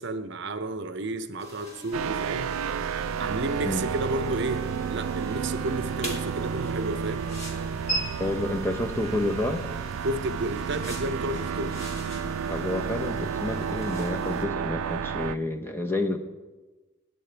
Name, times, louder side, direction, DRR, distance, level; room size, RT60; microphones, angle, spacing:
voice 1, 0.0-2.6 3.2-7.3 10.0-11.8, right 2 dB, 60° right, 0.7 m, -31 dB
sound 1, 1.4-14.4, right 1 dB, 30° left, 2.2 m, -41 dB
sound 2, 1.9-15.4, right 6 dB, 90° right, 0.4 m, -31 dB
voice 2, 8.2-9.6 12.5-16.2, left 1 dB, 10° left, 0.8 m, -29 dB
20.0 x 9.9 x 3.4 m
head